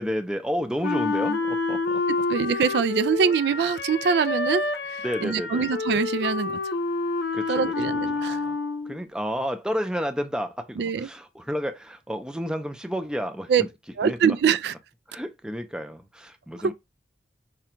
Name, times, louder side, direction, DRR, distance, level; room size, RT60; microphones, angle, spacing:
voice 1, 0.0-2.0 5.0-5.7 7.3-7.7 8.1-8.6 8.9-13.7 14.0-14.4 15.1-16.7, equal, 5° right, 0.5 m, -31 dB
Wind instrument woodwind instrument, 0.8-9.0, left 3 dB, 70° left, 0.6 m, -28 dB
voice 2, 2.1-6.6 7.5-8.4 10.8-11.1 13.5-13.6 14.0-14.7 16.6-16.7, right 6 dB, 70° right, 0.3 m, -24 dB
4.9 x 2.2 x 4.4 m
head